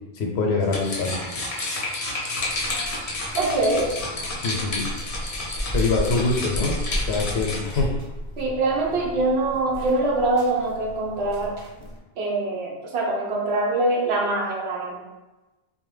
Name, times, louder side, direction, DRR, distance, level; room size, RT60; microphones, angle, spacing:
voice 1, 0.1-1.2 4.4-4.9 5.7-6.8 7.0-8.0, left 3 dB, 75° left, 0 dB, 0.9 m, -24 dB
sound 1, 0.6-7.8, left 2 dB, 45° left, 0.5 m, -31 dB
sound 2, 2.4-12.0, equal, 45° right, 0.6 m, -33 dB
voice 2, 3.4-3.9 8.4-11.5 12.2-15.0, right 2 dB, 80° right, -2 dB, 0.9 m, -24 dB
2.7 x 2.1 x 3.1 m, 1.1 s
omnidirectional pair, 1.1 m